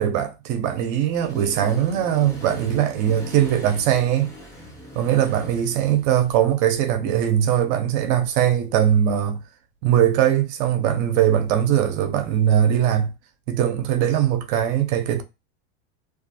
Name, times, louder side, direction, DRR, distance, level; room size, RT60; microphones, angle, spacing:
voice 1, 0.0-4.3 5.0-9.4 9.8-13.1 13.5-15.2, right 10 dB, 50° right, 0.6 m, -21 dB
Accelerating revving vroom, 1.1-6.3, left 1 dB, 10° left, 0.7 m, -40 dB
2.4 x 2.4 x 2.7 m
supercardioid pair, 135°, 31 cm